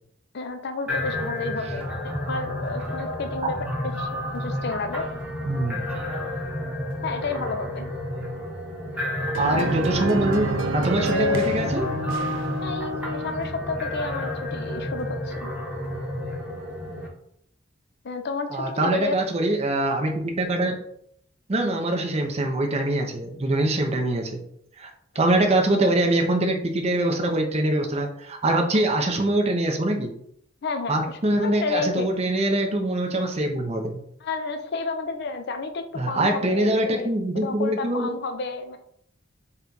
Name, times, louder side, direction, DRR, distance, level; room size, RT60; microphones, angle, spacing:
voice 1, 0.3-3.6 4.0-5.1 7.0-7.9 12.6-15.5 18.0-19.2 30.6-32.1 34.2-38.8, left 4 dB, 60° left, 7 dB, 0.5 m, -31 dB
sound 1, 0.9-17.1, left 1 dB, 5° right, 1.0 m, -31 dB
voice 2, 5.4-5.8 9.4-10.5 10.7-11.9 18.5-20.7 21.5-24.4 24.8-30.1 30.9-34.0 35.9-38.1, right 1 dB, 35° right, 3 dB, 0.6 m, -23 dB
sound 2, 9.3-13.5, equal, 80° right, 0.4 m, -27 dB
4.2 x 2.3 x 3.8 m, 0.69 s
head